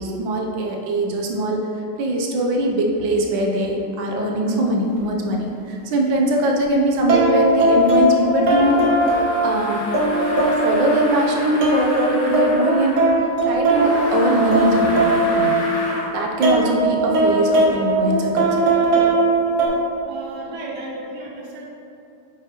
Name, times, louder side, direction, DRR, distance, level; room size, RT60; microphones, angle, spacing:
voice 1, 0.0-1.7 2.0-8.9 9.4-9.8 10.6-15.0 15.3-15.7 16.1-18.7, right 1 dB, 85° right, 0 dB, 1.5 m, -21 dB
sound 1, 5.0-5.1 7.1-16.0 16.4-19.7, right 1 dB, 60° right, 1.5 m, -19 dB
sound 2, 8.5-13.1 13.7-16.1, left 1 dB, 75° left, 1.8 m, -31 dB
voice 2, 20.0-21.7, right 2 dB, 25° right, -4 dB, 0.6 m, -34 dB
8.7 x 4.9 x 3.0 m, 2.8 s
omnidirectional pair, 2.0 m